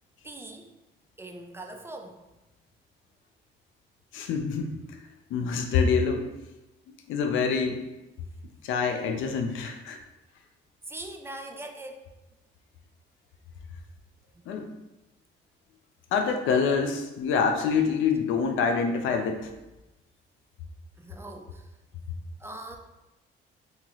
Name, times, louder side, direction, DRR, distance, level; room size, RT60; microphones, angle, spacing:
voice 1, 0.2-0.7 1.2-2.2 5.4-5.6 10.8-12.0 14.3-14.4 21.0-21.7 22.4-22.8, right 2 dB, 10° right, 3 dB, 0.3 m, -41 dB
voice 2, 4.1-5.0 5.3-6.3 6.9-7.8 8.6-10.0 14.5-14.7 16.1-19.5, left 5 dB, 85° left, 5 dB, 0.4 m, -26 dB
2.8 x 2.3 x 2.9 m, 1.0 s
cardioid pair, 90°, 20 cm